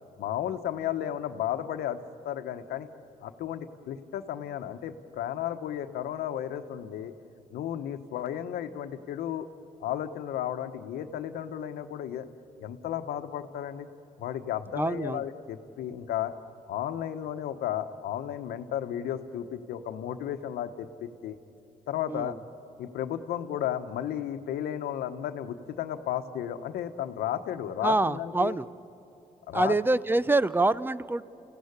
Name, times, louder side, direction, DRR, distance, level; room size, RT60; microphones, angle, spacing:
voice 1, 0.2-2.0 2.2-2.9 3.2-7.1 7.5-9.5 9.8-12.3 12.6-13.9 14.2-16.3 16.7-21.4 21.9-22.3 22.8-28.6 29.5-29.8, left 10 dB, 85° left, 9 dB, 1.1 m, -33 dB
voice 2, 14.8-15.2 22.1-22.4 27.8-28.7 29.5-31.2, right 2 dB, 15° right, 18 dB, 0.6 m, -25 dB
29.0 x 16.0 x 9.7 m, 3.0 s
supercardioid pair, 70°, 16 cm